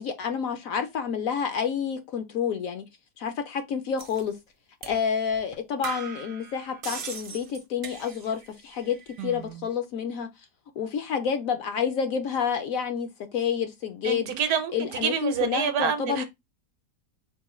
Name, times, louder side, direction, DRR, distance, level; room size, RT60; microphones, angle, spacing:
voice 1, 0.0-2.8 3.2-4.4 4.9-9.0 9.2-10.3 10.8-14.3 14.7-16.2, left 7 dB, 65° left, 0.9 m, -29 dB
sound 1, 4.0-4.2 4.8-5.0 5.3-5.4 5.8-8.5 8.7-9.3, right 6 dB, 50° right, 0.7 m, -39 dB
voice 2, 9.2-9.7 14.0-16.2, right 7 dB, 70° right, 1.1 m, -28 dB
4.6 x 2.2 x 4.2 m
omnidirectional pair, 1.7 m